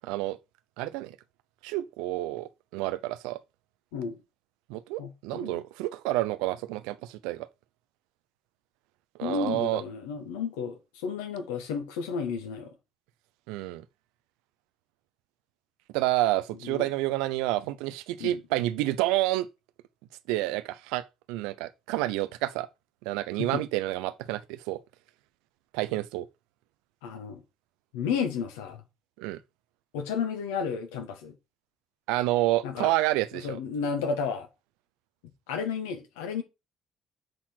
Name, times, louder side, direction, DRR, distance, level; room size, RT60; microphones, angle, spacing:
voice 1, 0.0-0.4 0.8-1.2 1.6-3.4 4.7-7.5 9.2-9.8 13.5-13.8 15.9-19.5 20.3-22.7 23.0-24.8 25.7-26.3 29.2-29.4 32.1-33.6, right 16 dB, 75° right, 0.5 m, -29 dB
voice 2, 5.0-5.6 9.2-12.7 16.6-16.8 18.2-18.4 23.4-23.6 27.0-27.4 27.9-28.8 29.9-31.3 32.6-32.9 33.4-34.5 35.5-36.4, left 6 dB, 80° left, 1.3 m, -32 dB
7.7 x 4.2 x 4.4 m
hypercardioid pair, 50°, 0 cm